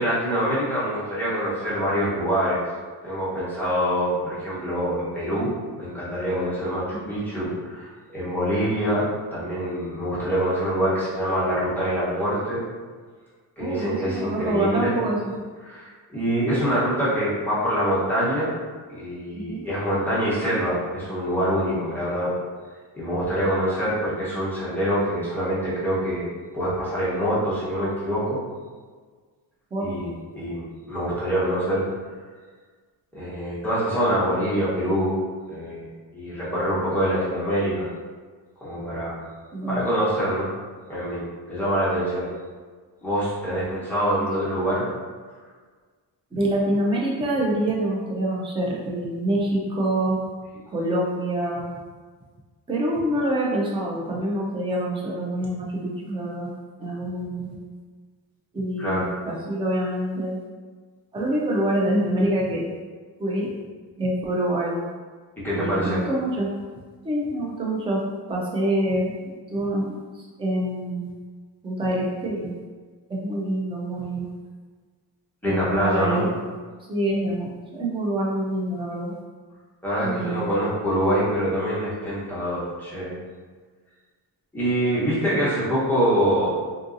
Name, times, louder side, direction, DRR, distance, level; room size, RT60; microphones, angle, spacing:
voice 1, 0.0-2.6 3.0-12.6 13.6-14.9 15.6-18.5 18.9-22.3 22.9-26.3 26.5-28.4 29.8-31.8 33.1-35.2 35.5-37.9 38.6-39.2 39.7-40.5 40.9-42.3 43.0-44.9 58.8-59.0 65.4-66.0 75.4-76.2 79.8-83.2 84.5-86.5, equal, 5° left, -10 dB, 0.8 m, -25 dB
voice 2, 13.6-15.2 19.3-19.7 29.7-29.9 39.5-39.8 44.2-44.3 46.3-50.2 50.7-51.7 52.7-56.5 56.8-57.6 58.5-60.4 61.1-62.6 63.2-63.5 64.0-64.7 65.5-66.5 67.0-68.0 68.3-69.1 69.5-71.0 71.6-72.5 73.1-74.3 75.4-76.4 76.9-79.1 80.0-80.5, right 1 dB, 15° right, -3 dB, 0.3 m, -26 dB
3.7 x 2.6 x 2.4 m, 1.5 s
wide cardioid pair, 175°, 43 cm